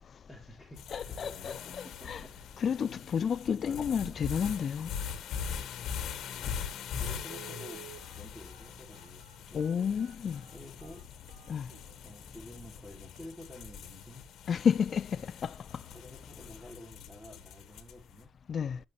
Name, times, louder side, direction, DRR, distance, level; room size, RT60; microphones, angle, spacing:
voice 1, 0.3-2.3 6.3-6.7 7.0-9.7 10.5-11.1 12.0-14.3 15.9-18.3, left 1 dB, 5° right, 3.6 m, -50 dB
sound 1, 0.8-18.1, left 7 dB, 75° left, 1.5 m, -42 dB
voice 2, 0.9-1.5 2.1-2.2 2.6-4.9 9.5-10.4 11.5-11.7 14.5-15.5 18.5-18.8, left 7 dB, 50° left, 0.5 m, -30 dB
Telephone, 7.2-12.1 12.6-12.7 13.1-13.3 13.6-13.9 14.2-14.3, right 16 dB, 90° right, 1.0 m, -53 dB
12.0 x 6.9 x 3.3 m
cardioid pair, 90°, 0 cm